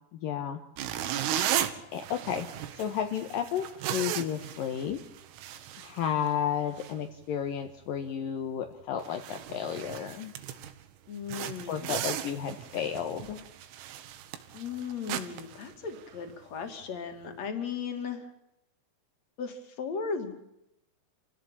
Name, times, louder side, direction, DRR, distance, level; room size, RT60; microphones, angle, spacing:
voice 1, 0.1-0.6 1.9-2.5 2.7-5.0 5.8-10.3 11.7-13.4, left 9 dB, 65° left, 5 dB, 2.3 m, -32 dB
sound 1, 0.8-6.5 6.8-7.0 7.5-7.7 8.1-8.2 8.7-8.8 9.0-10.8 11.3-16.3, right 11 dB, 90° right, 4.2 m, -36 dB
voice 2, 11.1-12.1 14.5-18.3 19.4-20.4, left 6 dB, 40° left, 6 dB, 3.2 m, -36 dB
28.0 x 16.0 x 8.6 m, 0.84 s
omnidirectional pair, 5.8 m